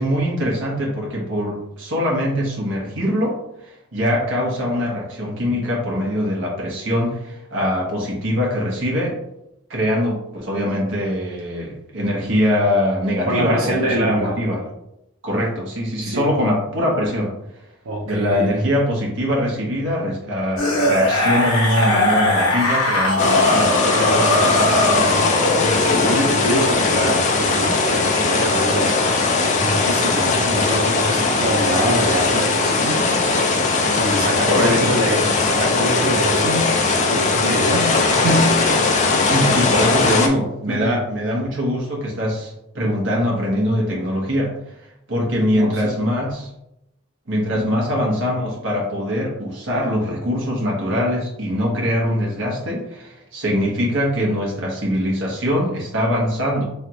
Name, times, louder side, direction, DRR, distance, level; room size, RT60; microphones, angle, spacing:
voice 1, 0.0-3.4 3.9-9.2 9.7-14.6 15.2-17.3 18.1-23.7 25.7-26.1 34.4-34.9 39.3-44.5 45.1-46.5 47.3-56.6, equal, 60° right, -2 dB, 1.1 m, -22 dB
voice 2, 13.3-14.4 16.0-16.3 17.8-18.6 23.9-24.8 25.0-33.0 33.9-36.7 37.0-38.6 40.7-41.0 45.5-45.9 47.5-47.8, right 1 dB, 80° right, -3 dB, 0.7 m, -25 dB
sound 1, 20.6-26.5 27.7-27.8, left 1 dB, 80° left, 1.1 m, -19 dB
sound 2, 23.2-40.3, left 3 dB, 35° left, 0.4 m, -19 dB
3.6 x 3.3 x 2.9 m, 0.84 s
head